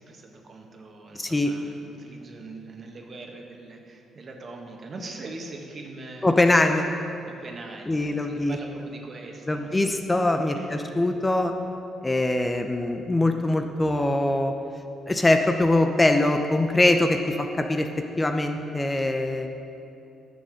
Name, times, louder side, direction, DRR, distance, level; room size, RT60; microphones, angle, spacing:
voice 1, 0.0-6.3 7.3-9.8 10.5-10.9, right 2 dB, 45° right, 2 dB, 1.5 m, -41 dB
voice 2, 1.1-1.5 6.2-6.8 7.9-8.6 9.5-11.5 12.0-14.5 15.1-17.9 18.2-19.5, left 2 dB, 15° left, 5 dB, 0.7 m, -22 dB
10.5 x 6.7 x 6.5 m, 2.7 s
cardioid pair, 90°, 0 cm